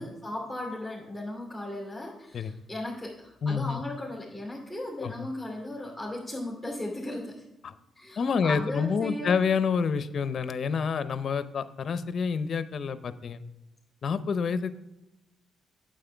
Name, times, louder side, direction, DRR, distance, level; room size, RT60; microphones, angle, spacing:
voice 1, 0.0-7.4 7.9-9.4, left 1 dB, 10° right, -5 dB, 2.7 m, -36 dB
voice 2, 3.4-3.8 5.0-5.1 7.6-7.7 8.2-13.4 14.0-14.7, left 6 dB, 50° left, 13 dB, 0.6 m, -28 dB
8.9 x 7.6 x 3.4 m, 0.95 s
cardioid pair, 90°, 0 cm